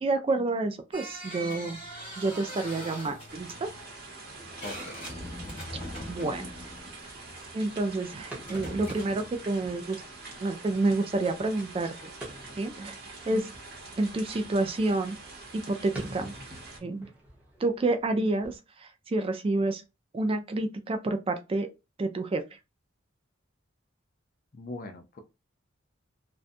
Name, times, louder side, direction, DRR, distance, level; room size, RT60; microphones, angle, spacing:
voice 1, 0.0-1.8 2.2-3.7 5.7-5.8 6.1-6.5 7.5-10.0 10.4-12.1 12.6-13.0 13.3-13.5 14.0-15.2 15.7-16.3 16.8-17.1 17.6-19.8 20.1-21.7 22.0-22.4, right 2 dB, 30° right, 0.3 m, -29 dB
sound 1, 0.9-7.5 8.3-9.3, equal, 30° left, 1.2 m, -41 dB
sound 2, 3.3-16.8, right 3 dB, 55° right, 0.9 m, -45 dB
voice 2, 4.6-5.0 24.5-25.2, left 2 dB, 45° left, 0.5 m, -40 dB
sound 3, 6.3-18.6, right 1 dB, 10° right, 0.8 m, -49 dB
2.6 x 2.2 x 2.5 m
head